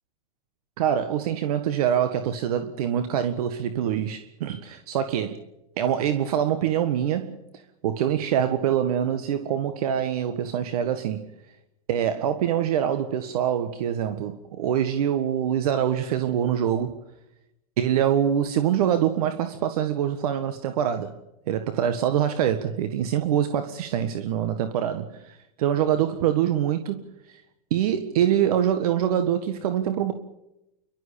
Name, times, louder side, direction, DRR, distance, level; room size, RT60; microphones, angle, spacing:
voice 1, 0.8-5.4 5.8-7.4 7.8-11.2 11.9-17.0 17.8-21.1 21.5-27.4 27.7-30.1, right 9 dB, 70° right, 1.7 m, -25 dB
29.0 x 12.5 x 8.5 m
hypercardioid pair, 120°, 20 cm